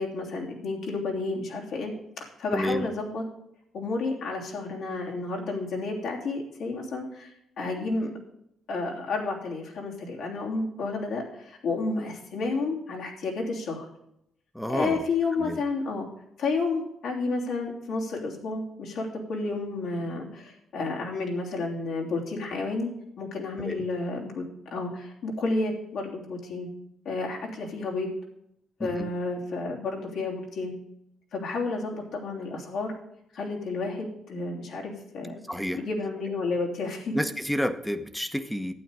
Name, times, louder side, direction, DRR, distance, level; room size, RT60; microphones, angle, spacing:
voice 1, 0.0-1.9 2.2-3.2 3.7-7.3 7.6-8.1 8.7-13.9 14.7-16.1 16.4-22.9 23.2-24.4 24.7-26.7 27.0-28.1 28.8-30.7 31.3-32.9 33.3-35.4 35.7-37.1, left 3 dB, 75° left, -2 dB, 3.2 m, -31 dB
voice 2, 2.5-2.9 14.5-15.1 15.4-15.6 23.6-23.8 28.8-29.1 35.5-35.8 37.1-38.7, equal, 5° left, 9 dB, 1.0 m, -30 dB
12.0 x 8.9 x 4.9 m, 0.77 s
cardioid pair, 90°, 0 cm